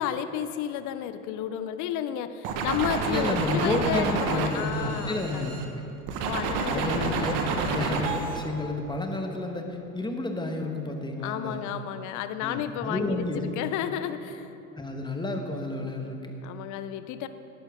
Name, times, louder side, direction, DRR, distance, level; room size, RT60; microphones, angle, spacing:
voice 1, 0.0-5.6 6.2-7.3 7.5-7.8 11.2-14.5 16.4-17.3, left 9 dB, 45° left, 11 dB, 0.8 m, -32 dB
sound 1, 2.4-5.7 6.1-8.4, right 4 dB, 50° right, 1.7 m, -29 dB
voice 2, 3.1-5.5 6.6-7.3 7.7-9.7 9.9-11.6 12.4-13.4 14.8-16.3, left 2 dB, 10° left, 3 dB, 1.5 m, -30 dB
18.5 x 11.5 x 3.8 m, 2.9 s
figure-of-eight pair, 80°, 43 cm